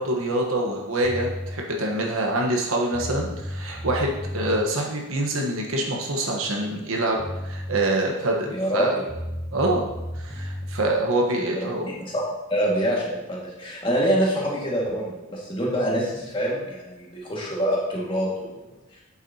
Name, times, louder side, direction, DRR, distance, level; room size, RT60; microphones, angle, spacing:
voice 1, 0.0-7.2 7.4-9.0 9.5-9.9 10.2-11.9, right 1 dB, 80° right, 0 dB, 1.2 m, -25 dB
sound 1, 1.0-1.6 2.6-2.7 2.9-4.6 6.8-6.9 7.2-7.8 9.1-10.8, equal, 15° right, 1.6 m, -33 dB
voice 2, 8.5-9.0 11.5-12.2 12.5-18.5, equal, 25° left, -4 dB, 1.9 m, -25 dB
8.4 x 7.1 x 2.8 m, 1.0 s
head